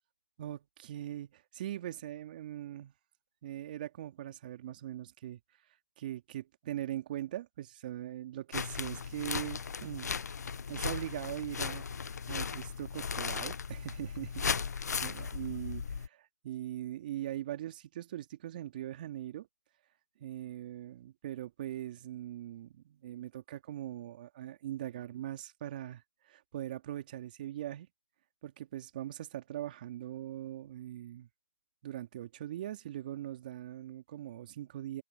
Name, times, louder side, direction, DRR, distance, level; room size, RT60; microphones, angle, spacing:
voice 1, 0.4-2.9 3.4-5.4 6.0-10.1 10.7-14.4 14.7-19.5 20.2-27.9 28.4-31.3 31.8-35.0, right 13 dB, 30° right, 2.3 m, -41 dB
sound 1, 8.5-16.1, left 6 dB, 60° left, 0.4 m, -37 dB
figure-of-eight pair, 160°, 10 cm